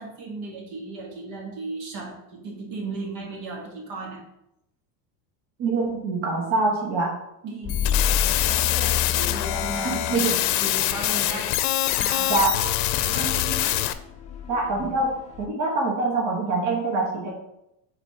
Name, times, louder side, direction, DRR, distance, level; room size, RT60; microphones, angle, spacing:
voice 1, 0.0-4.2 7.4-11.6 12.0-12.3 13.0-13.8, right 3 dB, 75° right, 0 dB, 1.8 m, -36 dB
voice 2, 5.6-7.1 9.8-10.3 12.3-12.6 14.5-17.3, right 3 dB, 55° right, -2 dB, 1.5 m, -24 dB
sound 1, 7.6-15.5, left 8 dB, 15° left, 0.3 m, -31 dB
sound 2, 7.7-13.9, left 14 dB, 90° left, 0.6 m, -24 dB
5.0 x 4.1 x 4.9 m, 0.84 s
supercardioid pair, 135°, 48 cm